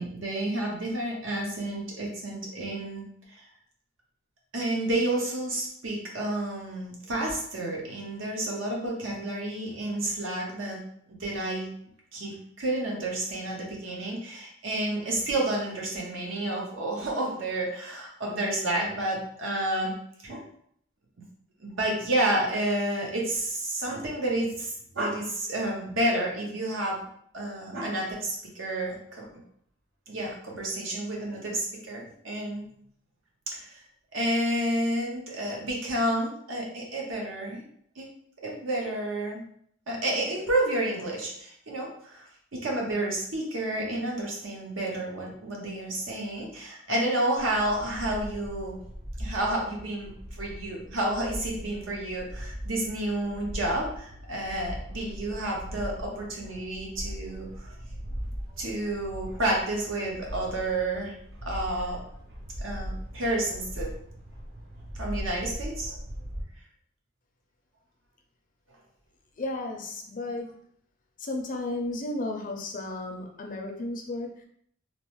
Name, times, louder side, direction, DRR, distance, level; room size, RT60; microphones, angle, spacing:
voice 1, 0.0-3.0 3.3-3.5 4.5-10.8 11.1-11.7 12.1-20.0 20.2-20.4 21.6-27.0 27.3-29.2 30.1-32.7 33.5-33.8 34.1-37.6 38.0-38.1 38.4-39.4 39.9-48.8 49.2-57.7 58.6-61.2 61.4-62.0 62.6-63.9 65.0-65.9, right 1 dB, 80° right, -2 dB, 0.8 m, -30 dB
sound 1, 47.4-66.4, equal, 40° right, 0.6 m, -39 dB
voice 2, 69.4-70.5 71.2-74.4, left 2 dB, 45° left, 3 dB, 0.4 m, -33 dB
3.0 x 2.0 x 3.0 m, 0.66 s
head